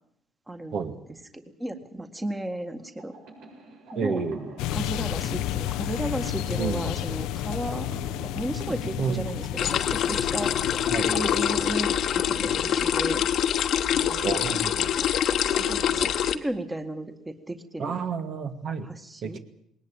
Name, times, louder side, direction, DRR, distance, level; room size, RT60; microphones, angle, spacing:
voice 1, 0.5-0.9 1.3-3.1 3.9-4.2 4.7-7.9 8.2-10.5 11.0-13.2 13.9-15.1 15.5-18.0 18.8-19.4, right 1 dB, 15° right, 7 dB, 2.0 m, -34 dB
sound 1, 3.0-13.7, right 3 dB, 80° right, 7.3 m, -45 dB
voice 2, 4.0-4.5 6.6-6.8 9.0-9.3 10.9-11.1 14.2-14.7 15.9-16.1 17.8-18.9 19.2-19.4, right 6 dB, 55° right, 7 dB, 2.3 m, -30 dB
sound 2, 4.6-12.5, left 13 dB, 85° left, 0.8 m, -32 dB
sound 3, 9.6-16.3, left 9 dB, 60° left, 1.3 m, -25 dB
20.5 x 19.0 x 9.0 m, 0.72 s
cardioid pair, 100°, 0 cm